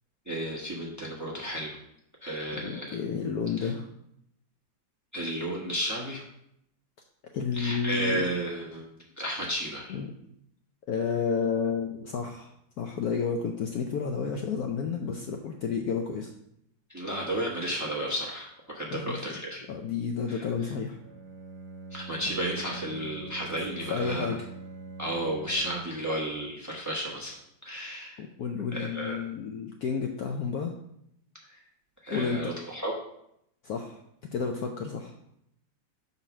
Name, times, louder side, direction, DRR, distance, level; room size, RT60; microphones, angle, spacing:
voice 1, 0.3-1.8 2.2-3.0 3.6-3.7 5.1-6.2 7.5-8.8 9.2-10.0 16.9-19.6 20.3-20.4 21.9-24.4 25.0-27.4 27.6-28.2 28.7-29.2 31.5-31.6 32.0-32.9, right 1 dB, 10° right, -3 dB, 1.0 m, -33 dB
voice 2, 2.5-3.9 7.3-8.2 9.9-10.1 10.9-16.3 18.9-19.2 19.7-21.0 23.8-24.5 28.2-30.7 32.1-32.5 33.6-34.0 34.3-35.1, left 6 dB, 70° left, 3 dB, 1.0 m, -31 dB
Bowed string instrument, 21.0-26.1, right 3 dB, 60° right, 1.4 m, -43 dB
5.7 x 4.0 x 6.0 m, 0.77 s
omnidirectional pair, 2.0 m